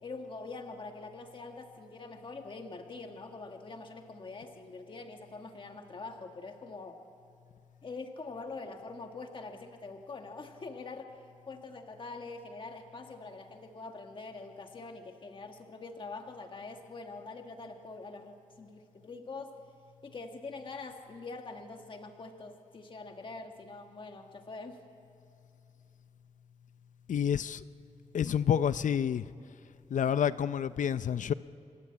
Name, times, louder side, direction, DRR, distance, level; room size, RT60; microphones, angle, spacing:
voice 1, 0.0-7.0 7.8-19.6 20.0-24.8, left 3 dB, 40° left, 4 dB, 1.5 m, -44 dB
voice 2, 27.1-27.6 28.1-29.2 29.9-31.3, left 8 dB, 85° left, 14 dB, 0.6 m, -28 dB
28.5 x 22.0 x 8.6 m, 2.5 s
wide cardioid pair, 145°, 13 cm